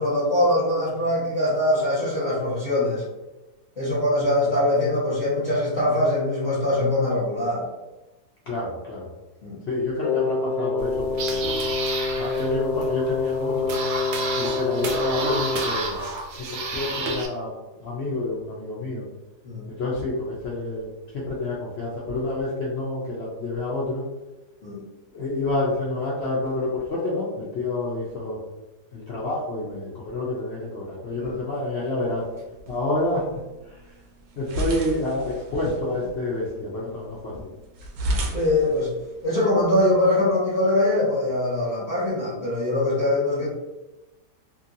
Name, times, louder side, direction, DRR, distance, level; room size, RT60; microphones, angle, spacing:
voice 1, 0.0-3.0 3.8-7.6 9.4-9.6 19.4-19.6 24.6-24.8 31.2-31.3 38.3-38.9 39.2-43.5, left 1 dB, 30° left, -9 dB, 1.1 m, -22 dB
voice 2, 8.5-9.0 9.7-11.5 12.2-13.7 14.4-16.0 16.5-17.5 17.8-19.0 19.7-20.9 21.1-24.0 25.1-28.4 28.9-32.3 32.7-33.2 34.4-37.3, left 2 dB, 70° left, -5 dB, 0.6 m, -28 dB
Wind instrument woodwind instrument, 10.0-15.8, left 4 dB, 90° left, 1.2 m, -26 dB
sound 1, 10.8-17.3, right 3 dB, 85° right, 1.2 m, -31 dB
sound 2, 32.0-40.1, right 1 dB, 70° right, 1.0 m, -35 dB
2.9 x 2.7 x 2.6 m, 1.1 s
omnidirectional pair, 1.8 m